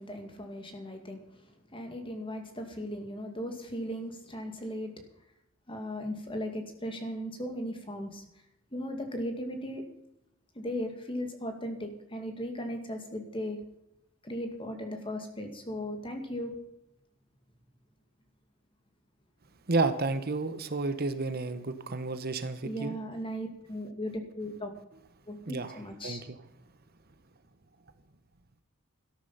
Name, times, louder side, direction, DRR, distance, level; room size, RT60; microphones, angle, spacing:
voice 1, 0.0-1.4 1.7-5.0 5.7-8.2 8.7-9.8 10.5-13.6 14.2-16.6 22.6-24.7 25.3-26.2, equal, 25° left, 5 dB, 2.3 m, -37 dB
voice 2, 19.7-22.9 25.5-25.8 26.0-26.4, right 3 dB, 50° right, 11 dB, 1.0 m, -31 dB
13.5 x 12.0 x 5.7 m, 0.82 s
head